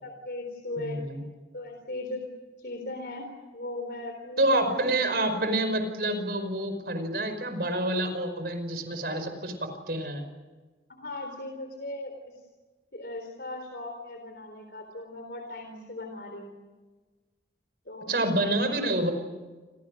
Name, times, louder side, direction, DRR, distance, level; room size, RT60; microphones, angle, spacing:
voice 1, 0.0-1.0 1.5-2.2 2.6-4.8 10.9-12.3 12.9-16.6 17.9-18.3, left 2 dB, 60° left, 4 dB, 3.8 m, -38 dB
voice 2, 0.8-1.2 4.4-10.2 18.1-19.1, right 1 dB, 60° right, 8 dB, 5.3 m, -28 dB
29.0 x 28.5 x 6.5 m, 1.3 s
head